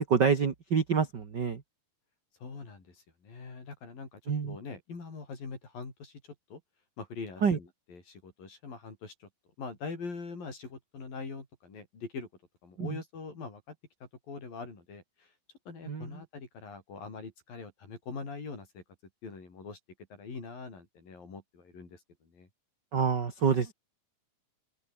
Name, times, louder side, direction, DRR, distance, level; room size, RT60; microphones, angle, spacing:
voice 1, 0.1-1.6 4.3-4.6 7.4-7.6 12.8-13.0 15.9-16.2 22.9-23.7, right 6 dB, 35° right, 2.0 m, -27 dB
voice 2, 2.4-6.2 6.5-6.6 7.0-9.3 9.6-12.3 12.6-13.8 14.0-15.3 15.7-18.8 19.2-19.8 20.1-22.5, left 4 dB, 65° left, 7.9 m, -43 dB
open air
omnidirectional pair, 4.4 m